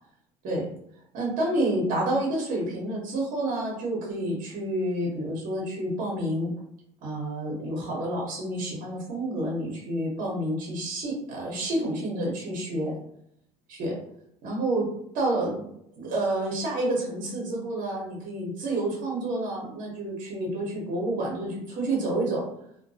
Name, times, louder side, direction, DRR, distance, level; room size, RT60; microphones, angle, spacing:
voice 1, 1.1-6.5 7.0-13.0 13.7-14.0 14.4-14.9 15.1-15.6 16.0-22.5, right 1 dB, 60° right, -3 dB, 0.9 m, -29 dB
2.2 x 2.1 x 2.6 m, 0.73 s
supercardioid pair, 105°, 15 cm